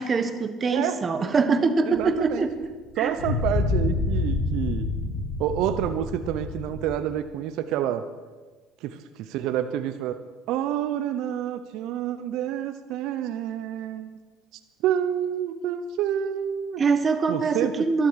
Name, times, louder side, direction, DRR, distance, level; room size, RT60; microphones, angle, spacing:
voice 1, 0.0-2.5 3.0-3.1 16.8-18.1, right 4 dB, 35° right, 10 dB, 1.4 m, -23 dB
voice 2, 0.7-1.0 1.8-2.5 3.0-4.9 5.4-8.0 8.8-10.2 10.5-14.2 14.8-16.8 17.3-17.9, right 10 dB, 70° right, 10 dB, 0.7 m, -28 dB
sound 1, 1.9-2.1 3.2-6.9, left 3 dB, 85° left, 5.3 m, -27 dB
12.5 x 12.0 x 6.6 m, 1.3 s
supercardioid pair, 80°, 0 cm